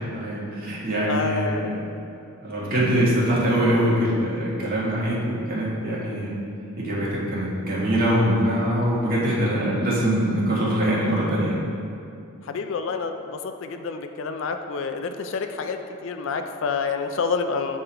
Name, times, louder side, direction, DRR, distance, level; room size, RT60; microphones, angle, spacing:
voice 1, 0.0-1.7 2.4-6.4 6.8-11.6, equal, 40° right, -7 dB, 1.7 m, -23 dB
voice 2, 1.1-1.7 12.5-17.8, left 5 dB, 60° left, 7 dB, 0.4 m, -28 dB
8.4 x 3.8 x 4.4 m, 2.5 s
head